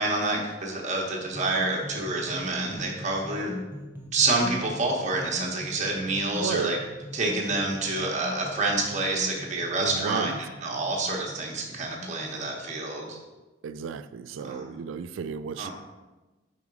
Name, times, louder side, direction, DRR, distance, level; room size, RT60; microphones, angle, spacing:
voice 1, 0.0-3.5 4.1-6.8 7.1-13.2 14.4-14.6 15.6-15.7, right 2 dB, 40° right, -1 dB, 1.2 m, -28 dB
sound 1, 1.3-12.8, left 1 dB, 10° right, 0.7 m, -40 dB
voice 2, 6.4-6.8 9.8-10.4 13.6-15.7, right 6 dB, 90° right, 13 dB, 0.3 m, -33 dB
5.3 x 4.8 x 4.7 m, 1.2 s
head